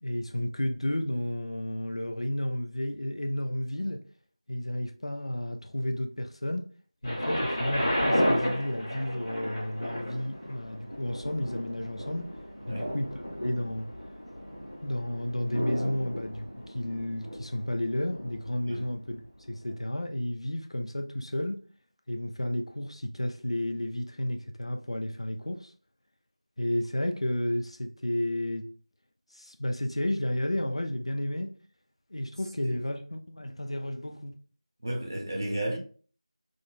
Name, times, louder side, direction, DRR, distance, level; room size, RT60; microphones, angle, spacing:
voice 1, 0.0-4.0 4.5-6.7 7.0-12.4 12.7-13.9 14.8-21.6 22.1-25.7 26.6-28.7 29.3-31.5 32.1-34.4, left 1 dB, 65° left, 0.4 m, -32 dB
Thunder, 7.0-18.9 19.6-19.7, equal, 20° left, 1.3 m, -33 dB
voice 2, 34.8-35.8, right 1 dB, 35° right, 0.7 m, -33 dB
3.7 x 2.2 x 2.4 m
figure-of-eight pair, 180°, 3 cm